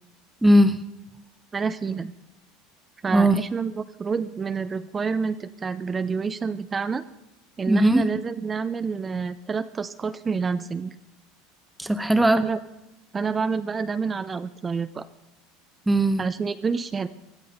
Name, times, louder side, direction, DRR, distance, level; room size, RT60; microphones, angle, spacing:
voice 1, 0.4-0.8 3.1-3.4 7.7-8.1 11.8-12.5 15.9-16.2, right 1 dB, 10° right, 9 dB, 0.9 m, -18 dB
voice 2, 1.5-2.1 3.0-7.0 7.6-10.9 12.4-12.6 13.1-15.1 16.2-17.1, right 5 dB, 25° right, 10 dB, 0.6 m, -28 dB
20.5 x 12.5 x 5.4 m, 0.95 s
supercardioid pair, 100°, 0 cm